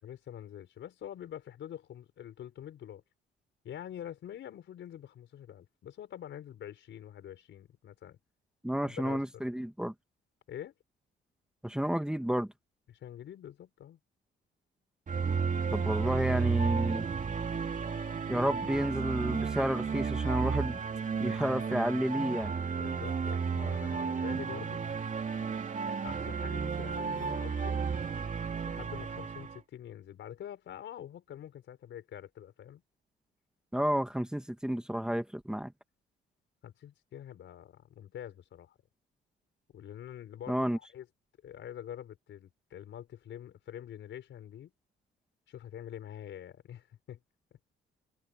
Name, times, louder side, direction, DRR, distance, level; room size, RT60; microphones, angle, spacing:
voice 1, 0.0-3.0 3.6-8.2 8.8-9.2 10.5-10.7 12.9-14.0 22.8-24.8 25.8-27.8 28.6-32.8 36.6-38.8 39.7-41.1 41.4-44.7 45.5-47.2, left 10 dB, 70° left, 5.1 m, -45 dB
voice 2, 8.6-9.9 11.6-12.5 15.7-17.1 18.3-20.8 21.2-22.5 33.7-35.7 40.5-40.8, equal, 5° right, 2.0 m, -31 dB
sound 1, 15.1-29.6, right 5 dB, 40° right, 2.7 m, -33 dB
cardioid pair, 90°, 20 cm